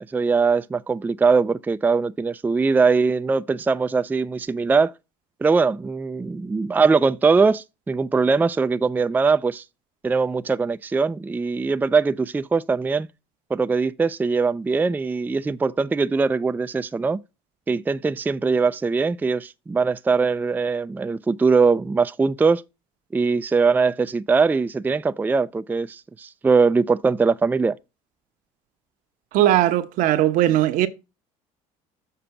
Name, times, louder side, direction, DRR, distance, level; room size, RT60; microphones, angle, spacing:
voice 1, 0.1-4.9 5.4-9.6 10.0-13.1 13.5-17.2 17.7-22.6 23.1-27.8, right 4 dB, 10° right, 0.4 m, -21 dB
voice 2, 29.3-30.9, right 13 dB, 65° right, 1.0 m, -19 dB
6.8 x 4.9 x 5.8 m
supercardioid pair, 95°, 15 cm